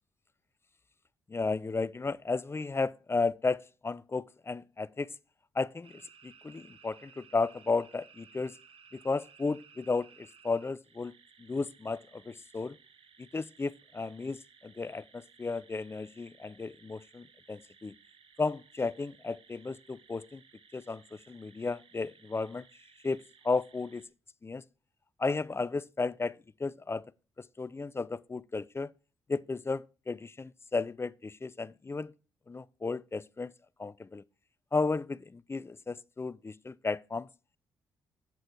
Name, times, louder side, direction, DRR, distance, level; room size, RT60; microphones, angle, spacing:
voice 1, 1.3-5.1 5.5-8.6 8.9-11.1 11.4-12.8 13.2-17.9 18.4-20.4 20.7-22.6 23.0-24.0 24.4-24.6 25.2-27.0 27.4-28.9 29.3-32.1 32.5-33.5 33.8-34.2 34.7-37.3, left 3 dB, 25° left, 0.4 m, -34 dB
sound 1, 5.8-24.1, right 6 dB, 55° right, 1.4 m, -59 dB
8.5 x 7.7 x 4.5 m
hypercardioid pair, 45°, 11 cm